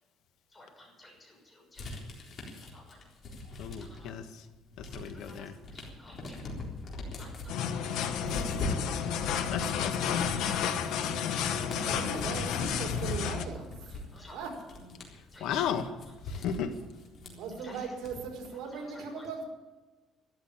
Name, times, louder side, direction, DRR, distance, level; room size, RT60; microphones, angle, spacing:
voice 1, 0.5-1.9 2.6-3.0 3.8-4.2 4.9-6.4 7.1-8.4 13.5-13.7 14.1-14.4 14.8-14.9 15.3-15.5 16.3-16.5 17.1-17.9 18.7-19.2, left 1 dB, 15° left, -2 dB, 6.5 m, -54 dB
sound 1, 1.8-4.2 4.5-18.5, left 2 dB, 40° left, 3.8 m, -41 dB
voice 2, 3.6-4.4 4.8-5.5 9.5-10.2 15.4-15.9 16.3-16.8, left 8 dB, 75° left, 7 dB, 1.5 m, -34 dB
sound 2, 7.5-13.4, left 7 dB, 90° left, 1.3 m, -31 dB
voice 3, 11.7-14.0 14.3-14.5 17.3-19.4, right 5 dB, 75° right, -1 dB, 4.9 m, -39 dB
13.5 x 12.5 x 8.7 m, 1.2 s
cardioid pair, 170°, 0 cm